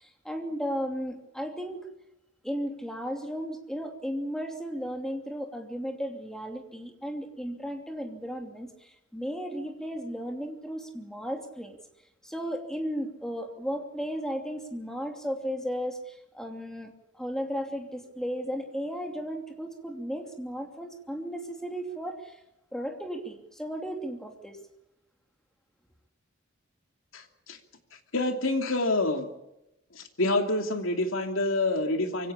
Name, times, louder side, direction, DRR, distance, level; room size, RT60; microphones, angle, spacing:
voice 1, 0.0-1.8 2.4-11.8 12.2-22.4 22.7-24.6, equal, 5° left, 3 dB, 2.8 m, -35 dB
voice 2, 27.1-27.6 28.1-29.3 29.9-32.3, left 2 dB, 80° left, 5 dB, 2.8 m, -27 dB
24.5 x 17.0 x 8.7 m, 0.91 s
head